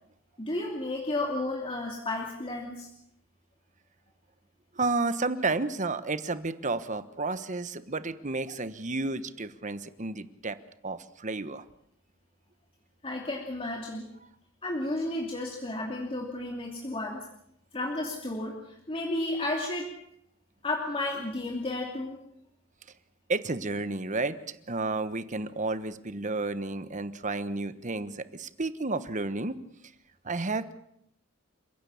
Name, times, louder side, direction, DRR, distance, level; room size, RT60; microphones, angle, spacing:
voice 1, 0.4-2.9 13.0-14.1 14.6-17.2 17.7-19.9 20.6-22.2, left 2 dB, 25° left, 0 dB, 2.9 m, -32 dB
voice 2, 4.7-10.6 10.8-11.6 23.3-24.4 24.7-29.6 30.2-30.7, right 3 dB, 35° right, 12 dB, 1.2 m, -31 dB
29.5 x 16.5 x 7.3 m, 0.76 s
head